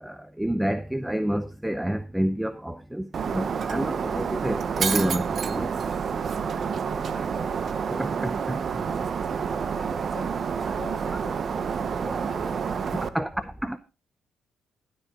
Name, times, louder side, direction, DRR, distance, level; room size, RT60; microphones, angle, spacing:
voice 1, 0.0-5.7 7.9-8.6 13.0-13.8, right 1 dB, 5° right, 0.7 m, -29 dB
Shatter, 3.1-13.1, right 6 dB, 50° right, 1.0 m, -28 dB
voice 2, 6.9-7.7 9.6-13.5, left 2 dB, 15° left, 4.7 m, -44 dB
14.5 x 9.1 x 3.8 m
cardioid pair, 85°, 0 cm